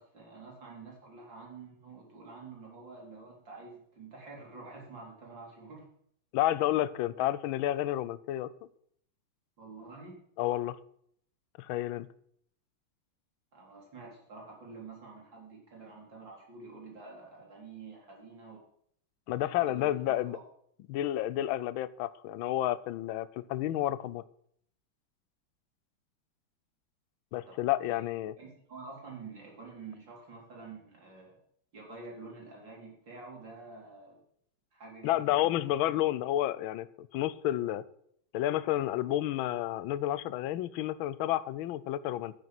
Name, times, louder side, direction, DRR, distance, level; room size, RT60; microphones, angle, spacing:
voice 1, 0.0-5.8 9.6-10.2 13.5-18.6 19.4-20.3 27.5-28.0 28.4-31.4 31.7-34.2 34.7-35.4, right 4 dB, 55° right, -2 dB, 4.5 m, -48 dB
voice 2, 6.3-8.5 10.4-10.8 11.6-12.1 19.3-20.4 20.9-24.2 27.3-28.3 35.0-37.9 38.3-42.3, left 13 dB, 75° left, 15 dB, 1.4 m, -30 dB
12.5 x 9.4 x 5.9 m, 0.68 s
omnidirectional pair, 2.4 m